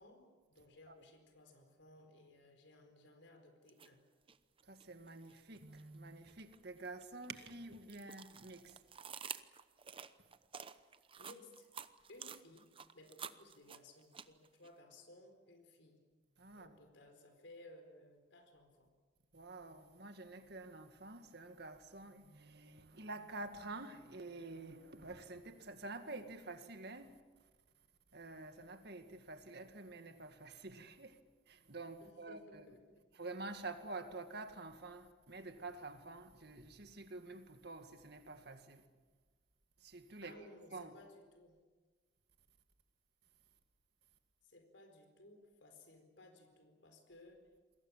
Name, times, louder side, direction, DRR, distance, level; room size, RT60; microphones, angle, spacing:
voice 1, 0.0-4.0 11.2-11.7 12.1-16.0 16.5-18.9 32.0-33.1 40.2-41.6 44.4-47.5, left 1 dB, 75° left, 4.4 m, -60 dB
sound 1, 3.7-3.9 4.3-5.8 6.2-14.7, right 7 dB, 30° right, 0.8 m, -50 dB
voice 2, 4.7-8.8 16.4-16.8 19.3-27.2 28.1-31.2 31.5-32.7 33.2-38.9 39.8-40.3 40.7-40.9, right 2 dB, 60° right, 2.1 m, -49 dB
28.0 x 22.0 x 7.5 m
head